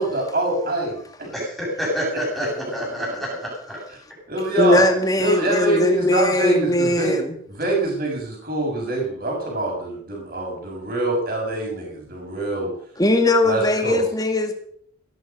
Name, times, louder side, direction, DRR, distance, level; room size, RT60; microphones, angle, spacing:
voice 1, 0.0-1.3 2.1-2.5 4.3-4.8 5.2-7.2 7.5-12.7 13.4-14.0, right 2 dB, 45° right, -1 dB, 6.9 m, -24 dB
voice 2, 1.3-3.8, equal, ahead, -4 dB, 7.3 m, -28 dB
voice 3, 4.6-7.4 13.0-14.5, left 1 dB, 20° left, 5 dB, 1.9 m, -19 dB
16.5 x 13.0 x 5.5 m, 0.62 s
head